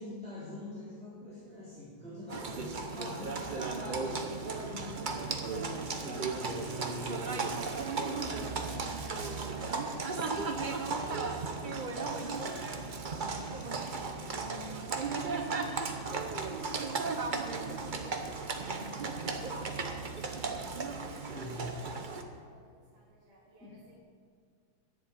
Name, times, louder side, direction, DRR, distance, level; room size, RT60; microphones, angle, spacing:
voice 1, 0.0-7.4 21.3-21.7 23.6-23.9, left 1 dB, 5° left, -9 dB, 2.9 m, -44 dB
Livestock farm animals working animals, 2.3-22.2, right 4 dB, 85° right, 0.4 m, -35 dB
voice 2, 8.3-11.7 20.9-21.8 22.1-24.0, right 1 dB, 35° right, -6 dB, 2.2 m, -58 dB
10.0 x 7.9 x 9.0 m, 2.2 s
omnidirectional pair, 2.3 m